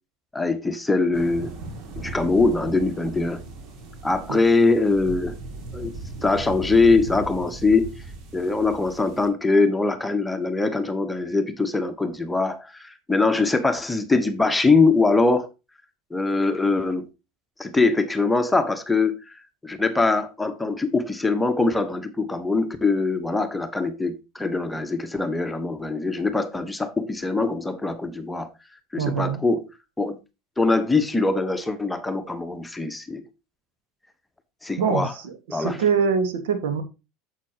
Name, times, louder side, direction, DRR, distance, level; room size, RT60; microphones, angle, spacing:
voice 1, 0.3-1.5 2.0-3.4 4.0-5.4 5.7-5.9 6.2-7.9 8.3-15.5 16.1-17.1 17.6-19.3 19.6-28.5 28.9-29.7 30.0-30.2 30.6-33.2 34.6-35.1 35.5-35.8, left 3 dB, 10° left, 1.2 m, -22 dB
sound 1, 1.1-9.3, right 3 dB, 55° right, 2.3 m, -38 dB
voice 2, 29.0-29.4 34.8-36.8, right 6 dB, 75° right, 1.8 m, -24 dB
8.9 x 7.4 x 3.0 m
hypercardioid pair, 85°, 0 cm